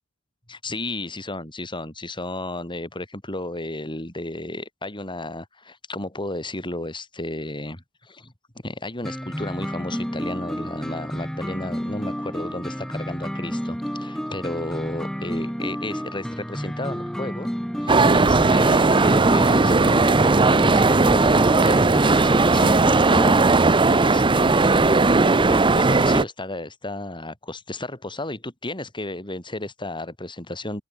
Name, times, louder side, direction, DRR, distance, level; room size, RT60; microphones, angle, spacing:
voice 1, 0.5-8.3 8.6-17.5 17.8-30.8, left 2 dB, 25° left, 7.0 m, -33 dB
sound 1, 9.0-23.4, equal, 5° left, 4.3 m, -30 dB
sound 2, 17.9-26.2, right 3 dB, 25° right, 0.7 m, -17 dB
head